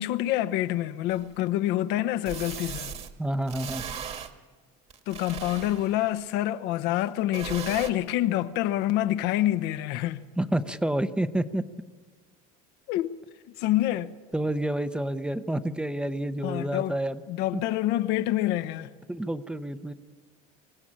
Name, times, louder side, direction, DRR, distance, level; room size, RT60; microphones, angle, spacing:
voice 1, 0.0-2.9 5.1-10.2 12.9-13.1 13.6-14.2 16.4-17.0 17.3-18.9, left 14 dB, 65° left, 0.9 m, -27 dB
sound 1, 1.1-1.2 2.2-3.1 3.5-4.3 4.9-6.0 7.3-7.9, right 7 dB, 35° right, 1.7 m, -37 dB
voice 2, 3.2-3.8 10.4-11.6 14.3-17.2 17.5-17.6 19.1-19.9, right 1 dB, 5° right, 0.7 m, -29 dB
25.5 x 16.0 x 8.8 m
cardioid pair, 135°, 18 cm